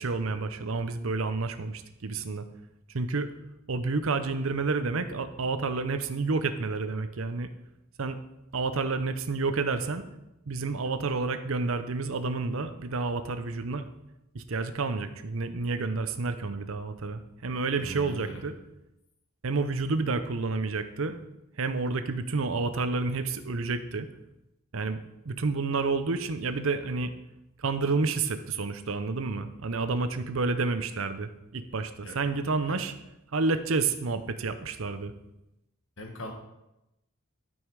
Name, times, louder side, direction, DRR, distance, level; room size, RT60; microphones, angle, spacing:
voice 1, 0.0-2.5 2.9-3.3 3.7-7.5 8.0-8.2 8.5-10.1 10.5-13.8 14.3-18.5 19.4-21.3 21.6-24.1 24.7-27.1 27.6-32.9 33.3-35.1, right 3 dB, 75° right, 10 dB, 0.7 m, -29 dB
voice 2, 17.7-18.4 32.0-32.2 32.7-32.8 36.0-36.3, right 1 dB, 65° left, 2 dB, 1.8 m, -40 dB
12.5 x 5.5 x 4.8 m, 0.91 s
head